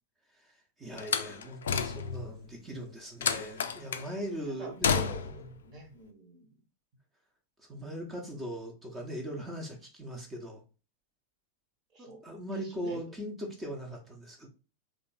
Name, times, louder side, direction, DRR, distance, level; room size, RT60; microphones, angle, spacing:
voice 1, 0.3-5.1 5.3-5.5 7.7-10.6 12.0-14.5, equal, 15° right, 1.0 m, -40 dB
Slam, 1.0-2.3 3.2-4.1 4.8-5.5, left 7 dB, 65° left, 0.4 m, -30 dB
voice 2, 4.6-6.6 11.9-12.2 12.5-13.0, right 1 dB, 35° right, 1.3 m, -46 dB
3.7 x 2.5 x 4.1 m
figure-of-eight pair, 90°, 0 cm